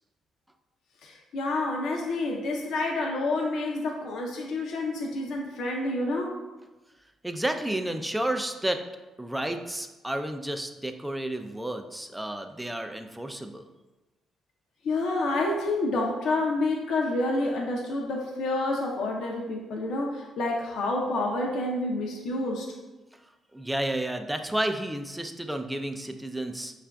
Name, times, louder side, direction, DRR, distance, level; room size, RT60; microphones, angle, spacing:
voice 1, 1.0-6.4 14.8-22.7, left 2 dB, 70° left, 0 dB, 0.5 m, -28 dB
voice 2, 7.2-8.8 9.2-13.7 23.5-26.7, right 1 dB, 10° right, 6 dB, 0.4 m, -31 dB
5.6 x 2.4 x 2.2 m, 1.1 s
hypercardioid pair, 50°, 0 cm